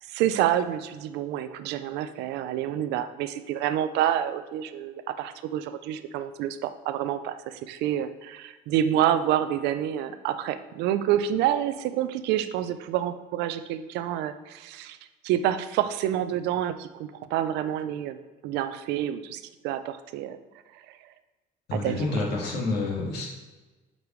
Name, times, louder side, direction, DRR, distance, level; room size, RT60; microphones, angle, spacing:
voice 1, 0.1-15.0 15.2-18.2 18.4-20.4 21.7-22.1, right 11 dB, 90° right, 11 dB, 0.5 m, -28 dB
voice 2, 21.7-23.3, left 2 dB, 75° left, -3 dB, 2.1 m, -28 dB
8.0 x 5.3 x 3.2 m, 1.2 s
cardioid pair, 110°, 17 cm